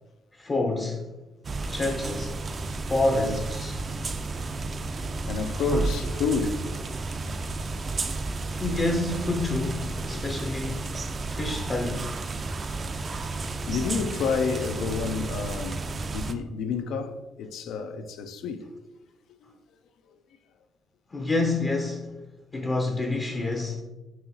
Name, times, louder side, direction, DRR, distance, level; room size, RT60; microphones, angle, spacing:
voice 1, 0.3-1.1 1.7-2.4 2.9-3.8 8.6-10.9 11.3-12.1 21.1-22.0 22.5-23.8, left 2 dB, 30° left, 0.5 m, -28 dB
sound 1, 1.4-16.3, right 3 dB, 40° right, 0.3 m, -32 dB
voice 2, 5.2-7.1 10.1-10.2 13.7-18.7 19.4-19.5 20.1-20.2, left 5 dB, 80° left, 0.4 m, -30 dB
5.5 x 2.9 x 2.7 m
cardioid pair, 90°, 0 cm